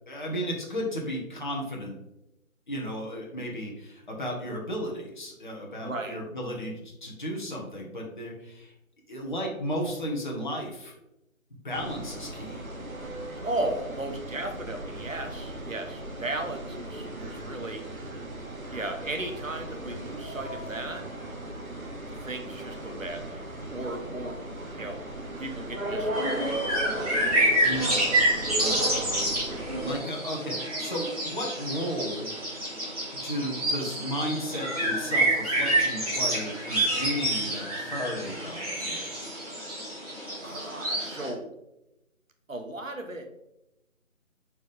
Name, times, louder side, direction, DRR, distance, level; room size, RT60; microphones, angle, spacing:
voice 1, 0.1-2.0 2.7-8.7 9.1-10.9 11.6-12.7 27.6-28.0 28.6-28.9 29.8-32.3 33.2-39.2, equal, 35° left, -2 dB, 1.4 m, -34 dB
voice 2, 5.8-6.2 13.4-17.8 18.7-21.0 22.2-23.4 23.7-24.4 24.7-25.0 25.4-26.7 40.4-41.5 42.5-43.5, right 2 dB, 70° right, 5 dB, 1.3 m, -35 dB
sound 1, 11.7-30.0, right 1 dB, 90° right, 1.6 m, -36 dB
sound 2, 26.1-41.3, right 1 dB, 25° right, 2.1 m, -28 dB
7.1 x 4.5 x 3.6 m, 0.88 s
figure-of-eight pair, 160°, 41 cm